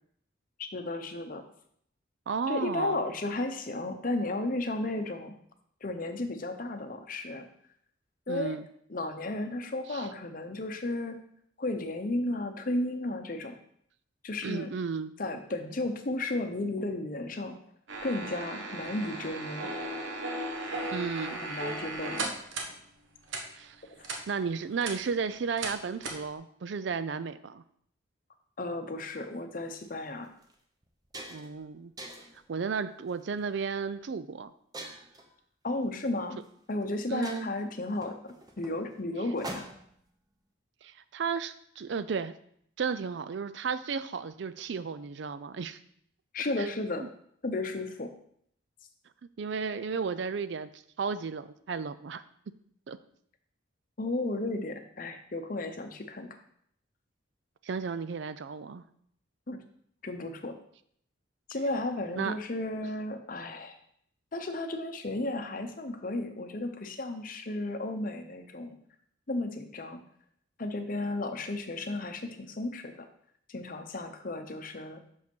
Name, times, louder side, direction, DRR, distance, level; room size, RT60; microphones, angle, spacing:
voice 1, 0.6-1.4 2.5-5.4 5.8-7.5 8.3-8.6 8.9-11.2 11.6-13.5 14.2-14.7 15.2-17.6 18.0-19.7 21.3-22.4 28.6-30.3 35.6-36.4 36.7-39.7 46.3-47.0 47.4-48.1 54.0-56.4 59.5-59.6 60.0-60.6 61.5-63.8 64.3-68.8 69.3-70.0 70.6-73.1 73.5-75.0, left 2 dB, 45° left, 7 dB, 0.7 m, -34 dB
voice 2, 2.3-3.0 8.3-8.7 9.9-10.1 14.4-15.1 20.9-21.4 23.5-23.8 24.3-27.6 31.3-31.9 32.5-34.5 37.1-37.5 40.8-42.3 42.8-45.8 46.6-46.7 47.0-47.1 49.4-52.2 52.9-53.0 57.6-58.8 62.2-62.4, right 5 dB, 65° right, 14 dB, 0.4 m, -33 dB
sound 1, 17.9-22.7 23.3-23.4 24.0-24.2 24.6-25.0 25.6-25.7 26.0-26.2, right 2 dB, 85° right, 1.1 m, -36 dB
sound 2, 29.7-29.9 30.4-30.5 30.8-31.6 32.0-32.4 33.1-33.4 34.7-35.3 36.4-36.5 36.8-36.9 37.2-40.0, right 1 dB, 20° right, 0.8 m, -44 dB
6.4 x 5.1 x 5.3 m, 0.67 s
head